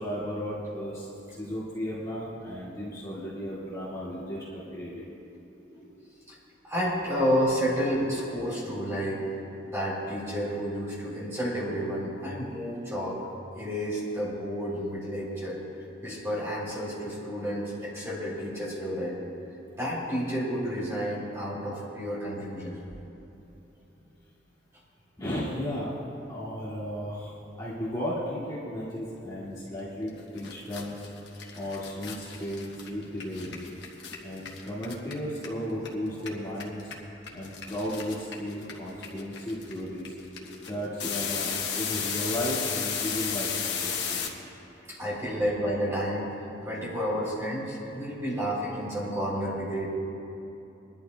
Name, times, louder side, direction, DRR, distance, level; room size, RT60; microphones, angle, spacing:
voice 1, 0.0-5.0 25.2-25.9 26.3-31.1 31.6-33.6 34.2-36.9 37.3-40.1 40.6-44.2, equal, 20° left, -9 dB, 1.9 m, -34 dB
voice 2, 6.6-9.4 9.6-13.2 13.5-15.6 16.0-19.2 19.8-22.8 31.4-31.5 34.1-34.2 40.3-40.7 44.9-46.3 46.6-49.9, equal, 15° right, -7 dB, 3.3 m, -30 dB
sound 1, 30.1-30.2 30.4-35.9 36.1-44.3, left 7 dB, 70° left, 1.3 m, -33 dB
26.0 x 11.5 x 2.3 m, 3.0 s
head